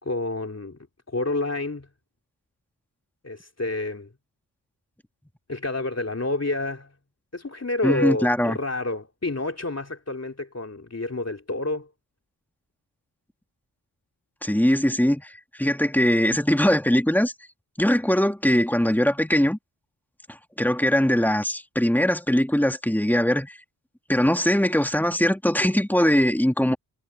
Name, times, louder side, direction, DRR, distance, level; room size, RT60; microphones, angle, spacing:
voice 1, 0.0-0.8 1.1-1.9 3.2-4.1 5.5-6.9 7.3-11.9, left 2 dB, 35° left, 3.5 m, -29 dB
voice 2, 7.8-8.6 14.4-17.3 17.8-19.6 20.3-23.6 24.1-26.8, equal, 5° left, 2.7 m, -21 dB
cardioid pair, 40°, 41 cm